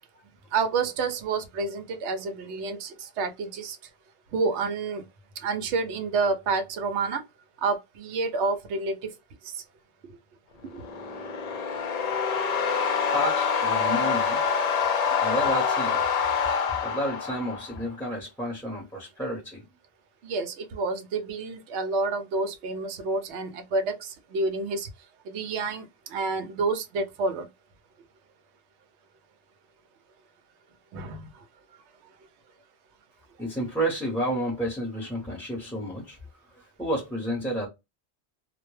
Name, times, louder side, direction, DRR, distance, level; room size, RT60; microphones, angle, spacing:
voice 1, 0.5-3.8 4.3-5.1 5.4-7.2 7.6-9.2 9.4-9.6 10.0-10.2 10.7-10.8 15.1-15.2 20.2-24.9 25.2-27.5 30.9-31.4, right 3 dB, 90° right, 0.9 m, -29 dB
sound 1, 10.7-17.8, left 6 dB, 50° left, 0.5 m, -26 dB
voice 2, 13.1-14.4 15.2-16.0 16.8-19.6 33.4-36.2 36.8-37.7, right 1 dB, ahead, 0.7 m, -30 dB
2.2 x 2.1 x 3.0 m
omnidirectional pair, 1.1 m